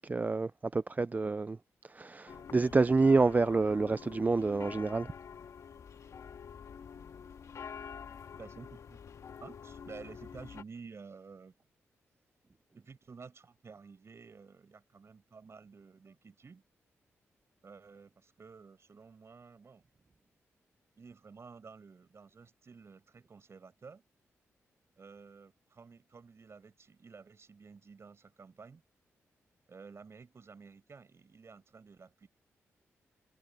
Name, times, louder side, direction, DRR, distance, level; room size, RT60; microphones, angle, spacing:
voice 1, 0.1-1.6 1.9-5.1, right 3 dB, 30° right, 0.5 m, -28 dB
sound 1, 2.3-10.6, left 7 dB, 65° left, 1.9 m, -47 dB
voice 2, 8.4-9.0 9.4-11.5 12.8-16.6 17.6-19.8 21.0-24.0 25.0-28.8 29.7-32.3, right 5 dB, 50° right, 7.1 m, -52 dB
supercardioid pair, 50°, 6 cm